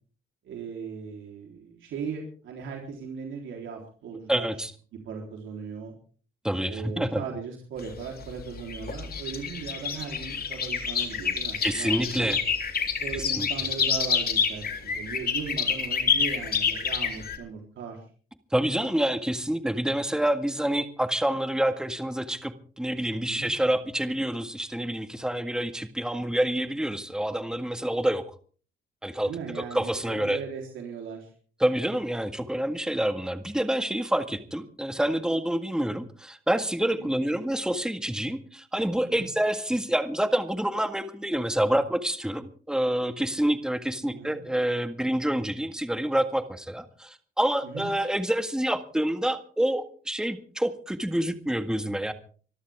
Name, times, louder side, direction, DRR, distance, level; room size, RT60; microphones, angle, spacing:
voice 1, 0.4-4.5 5.0-5.9 6.7-12.4 13.0-18.0 23.3-23.5 29.3-31.3 37.0-37.1 39.1-39.3 44.1-44.4 47.6-47.9, right 6 dB, 75° right, 1 dB, 3.9 m, -38 dB
voice 2, 4.3-4.7 6.4-7.2 11.6-12.4 13.4-13.5 18.5-28.3 29.0-30.4 31.6-52.1, right 1 dB, 5° right, 8 dB, 1.8 m, -27 dB
sound 1, 7.8-17.4, left 6 dB, 50° left, 3.5 m, -28 dB
25.0 x 13.0 x 3.6 m, 0.42 s
cardioid pair, 90°, 20 cm